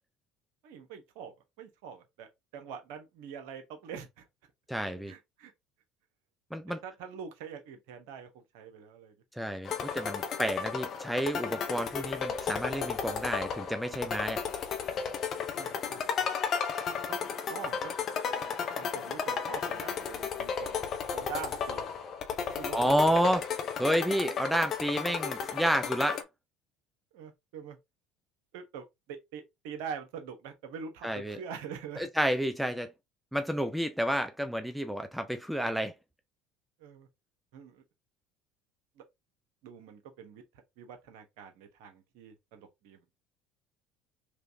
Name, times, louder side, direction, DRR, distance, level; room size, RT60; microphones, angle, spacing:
voice 1, 0.6-4.2 5.1-5.5 6.8-9.1 9.7-9.9 15.6-16.3 17.1-17.2 17.5-18.0 18.5-20.8 21.1-21.9 22.5-23.3 27.1-27.8 28.5-32.1 36.8-37.1 37.5-37.8 39.0-39.1 39.6-40.4 40.8-43.1, right 7 dB, 75° right, 1.0 m, -44 dB
voice 2, 4.7-5.1 6.5-6.8 9.4-14.4 22.7-23.4 23.8-26.2 31.0-31.4 32.0-32.9 33.3-35.9, equal, ahead, 0.5 m, -30 dB
sound 1, 9.6-26.2, left 6 dB, 50° left, 0.7 m, -34 dB
3.3 x 3.1 x 2.7 m
supercardioid pair, 85°, 0 cm